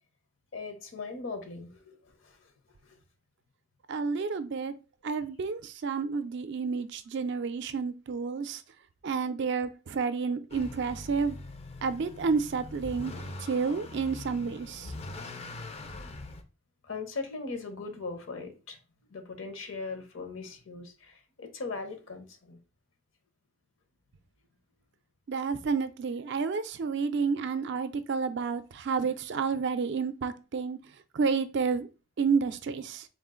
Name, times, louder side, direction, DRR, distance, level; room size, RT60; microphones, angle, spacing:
voice 1, 0.5-2.4 2.8-3.0 16.8-18.8 19.1-22.6, left 4 dB, 65° left, 0.8 m, -39 dB
voice 2, 3.9-4.7 5.0-8.6 9.0-11.4 11.8-14.9 25.3-30.8 31.1-31.9 32.2-33.1, right 5 dB, 60° right, 0.4 m, -30 dB
Motor vehicle (road) / Accelerating revving vroom, 10.5-16.4, left 2 dB, 30° left, 0.4 m, -42 dB
3.7 x 2.4 x 3.7 m
head